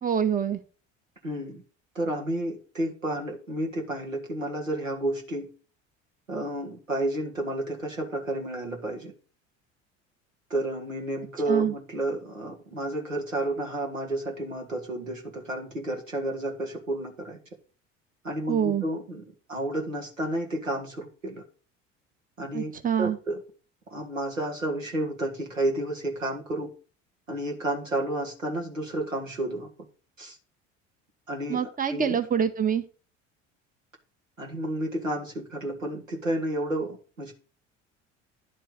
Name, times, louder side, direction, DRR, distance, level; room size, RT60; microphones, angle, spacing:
voice 1, 0.0-0.6 11.5-11.7 18.5-18.9 22.5-23.2 31.5-32.8, right 8 dB, 20° right, 9 dB, 1.1 m, -25 dB
voice 2, 1.2-1.6 2.0-5.5 6.3-9.1 10.5-17.4 18.2-19.2 19.5-21.4 22.4-22.7 23.0-23.4 23.9-26.7 27.3-29.7 30.2-30.4 31.3-31.6 31.9-32.2 34.4-37.3, right 1 dB, 90° right, 1 dB, 1.7 m, -31 dB
10.5 x 4.6 x 6.3 m, 0.36 s
figure-of-eight pair, 60°, 38 cm